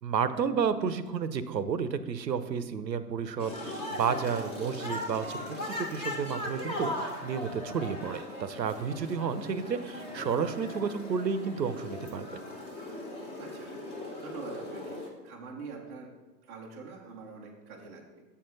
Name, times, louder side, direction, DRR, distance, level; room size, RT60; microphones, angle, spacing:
voice 1, 0.0-12.3, right 6 dB, 80° right, 12 dB, 0.7 m, -31 dB
sound 1, 3.4-15.1, left 1 dB, 10° left, 0.8 m, -39 dB
voice 2, 13.4-13.7 14.2-16.1 16.4-18.2, right 4 dB, 10° right, -4 dB, 0.4 m, -45 dB
7.1 x 4.6 x 5.3 m, 1.1 s
figure-of-eight pair, 110°, 49 cm